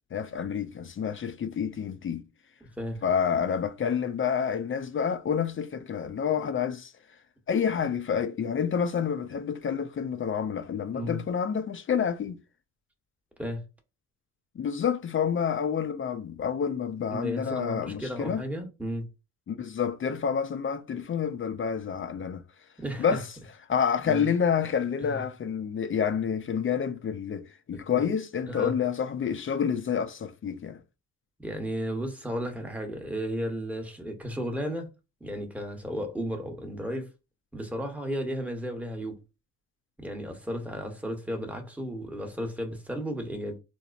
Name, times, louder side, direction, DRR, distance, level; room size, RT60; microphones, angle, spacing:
voice 1, 0.1-2.2 3.0-6.9 7.5-12.4 14.6-18.4 19.5-22.4 23.0-23.3 23.7-30.8, left 7 dB, 35° left, 0.5 m, -28 dB
voice 2, 17.1-19.1 22.8-23.2 24.0-24.3 25.0-25.2 27.7-28.1 28.5-28.7 31.4-34.9 35.2-37.1 37.5-39.2 40.0-43.6, equal, 5° right, 1.0 m, -34 dB
2.9 x 2.1 x 2.4 m
supercardioid pair, 65°, 37 cm